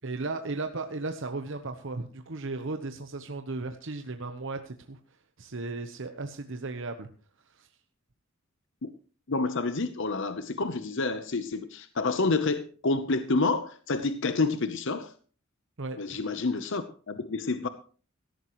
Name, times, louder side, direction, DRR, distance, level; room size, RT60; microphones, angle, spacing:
voice 1, 0.0-5.0 5.4-7.1 7.5-7.7 15.8-16.2, right 3 dB, 65° right, 7 dB, 1.0 m, -35 dB
voice 2, 9.3-15.1 16.0-17.7, left 3 dB, 65° left, 11 dB, 0.9 m, -28 dB
17.0 x 14.0 x 3.1 m, 0.40 s
head